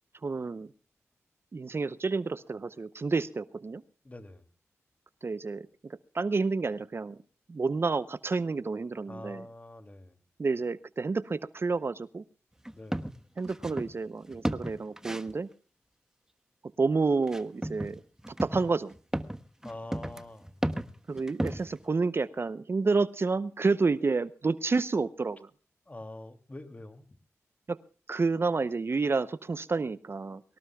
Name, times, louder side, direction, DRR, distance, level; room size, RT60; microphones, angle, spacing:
voice 1, 0.2-0.7 1.5-3.8 5.2-5.7 6.1-7.2 7.5-9.5 10.4-12.2 13.4-15.5 16.8-18.0 18.4-18.9 21.1-25.5 27.7-27.8 28.1-30.4, right 4 dB, 45° right, 15 dB, 0.7 m, -29 dB
voice 2, 4.0-4.5 9.1-10.2 12.7-13.3 19.6-20.6 25.9-27.1, left 2 dB, 25° left, 8 dB, 2.7 m, -45 dB
sound 1, 12.6-13.9 14.3-15.3 17.3-17.9 18.2-21.8, right 1 dB, 10° right, 1.2 m, -33 dB
23.5 x 18.5 x 2.3 m, 0.37 s
cardioid pair, 60°, 5 cm